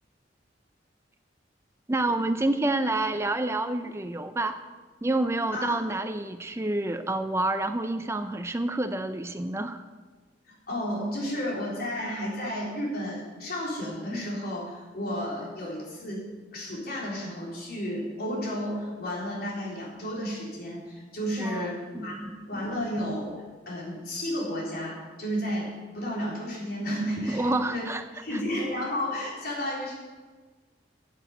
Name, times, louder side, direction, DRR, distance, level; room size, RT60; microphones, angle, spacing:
voice 1, 1.9-4.6 5.0-9.8 21.4-21.7 21.9-22.3 27.3-28.0 28.3-28.4, right 2 dB, 15° right, 9 dB, 0.4 m, -28 dB
voice 2, 10.5-23.3 23.7-27.8 28.2-29.9, equal, 60° left, -3 dB, 4.0 m, -32 dB
10.5 x 7.8 x 8.0 m, 1.4 s
head